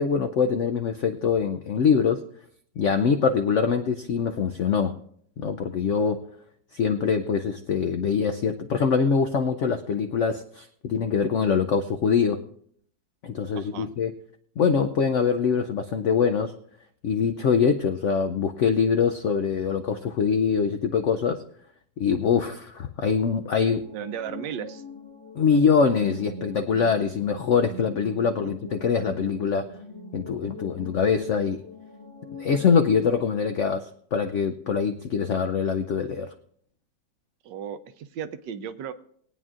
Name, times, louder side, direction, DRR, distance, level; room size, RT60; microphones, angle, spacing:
voice 1, 0.0-2.2 2.8-5.0 5.4-6.3 6.7-12.4 13.2-14.1 14.6-16.5 17.0-21.4 22.0-23.9 25.4-29.7 30.1-31.6 32.4-36.3, left 6 dB, 75° left, 7 dB, 0.6 m, -24 dB
voice 2, 13.5-13.9 23.9-24.8 28.4-28.5 37.4-38.9, right 8 dB, 80° right, 11 dB, 1.3 m, -35 dB
sound 1, 23.8-33.2, equal, 5° left, 1.2 m, -42 dB
21.5 x 9.0 x 2.5 m, 0.63 s
omnidirectional pair, 2.0 m